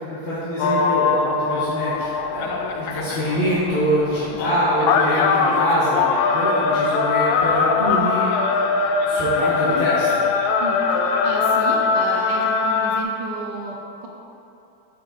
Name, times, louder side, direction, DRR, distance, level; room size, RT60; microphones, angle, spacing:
voice 1, 0.0-8.3 9.1-10.2, equal, 25° left, -11 dB, 1.7 m, -24 dB
sound 1, 0.6-13.0, left 5 dB, 75° left, 1.4 m, -21 dB
voice 2, 10.6-14.1, right 2 dB, 65° right, -1 dB, 1.4 m, -32 dB
7.9 x 6.7 x 4.3 m, 2.7 s
omnidirectional pair, 2.3 m